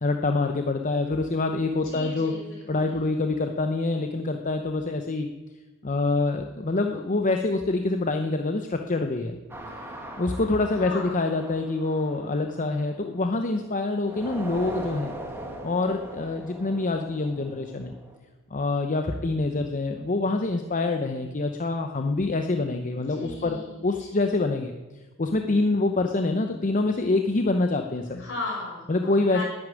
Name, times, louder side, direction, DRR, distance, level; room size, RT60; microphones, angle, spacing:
voice 1, 0.0-2.3 2.7-5.3 5.8-9.4 10.2-15.2 15.6-17.9 18.5-24.7 25.2-28.2 28.9-29.4, left 2 dB, 35° left, 5 dB, 0.7 m, -26 dB
voice 2, 1.8-3.1 10.8-11.2 23.1-24.6 28.1-29.4, left 3 dB, 60° left, -2 dB, 5.4 m, -37 dB
sound 1, 9.5-13.5 14.0-18.2, right 1 dB, 10° right, 1.6 m, -40 dB
10.0 x 9.7 x 9.7 m, 1.2 s
head